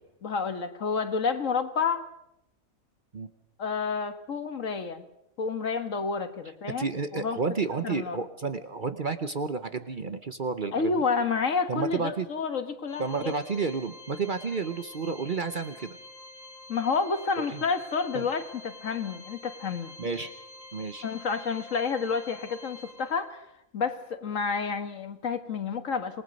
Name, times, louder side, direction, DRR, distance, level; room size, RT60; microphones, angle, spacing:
voice 1, 0.2-2.1 3.6-5.1 5.4-7.4 7.7-8.2 10.7-13.3 16.7-19.9 21.0-23.5 23.7-26.2, left 5 dB, 65° left, 9 dB, 1.8 m, -30 dB
voice 2, 6.8-10.9 11.7-12.3 13.0-16.0 17.4-17.6 18.1-18.3 20.0-20.3 20.7-21.0, right 4 dB, 40° right, 10 dB, 0.9 m, -31 dB
Organ, 12.9-23.5, left 2 dB, 45° left, 2.9 m, -48 dB
27.0 x 19.0 x 5.3 m, 0.82 s
omnidirectional pair, 1.5 m